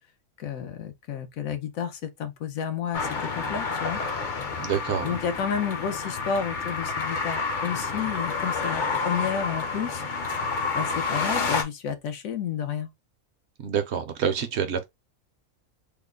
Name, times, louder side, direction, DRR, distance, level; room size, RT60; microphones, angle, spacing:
voice 1, 0.4-4.0 5.0-10.0 10.7-12.9, left 7 dB, 80° left, 1.2 m, -31 dB
sound 1, 2.9-11.6, left 4 dB, 45° left, 0.7 m, -29 dB
voice 2, 4.6-5.2 13.6-14.8, right 7 dB, 60° right, 0.8 m, -27 dB
3.5 x 2.1 x 3.6 m
omnidirectional pair, 1.4 m